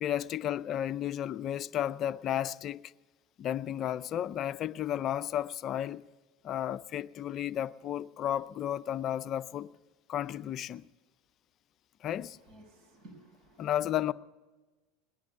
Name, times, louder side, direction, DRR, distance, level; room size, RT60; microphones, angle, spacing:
voice 1, 0.0-2.9 3.4-6.1 6.4-9.7 10.1-10.9 12.0-12.4 13.6-14.1, left 11 dB, 45° left, 0.4 m, -33 dB
voice 2, 12.1-13.7, right 1 dB, 55° right, 6.0 m, -56 dB
19.0 x 10.5 x 6.9 m
hypercardioid pair, 80°, 0 cm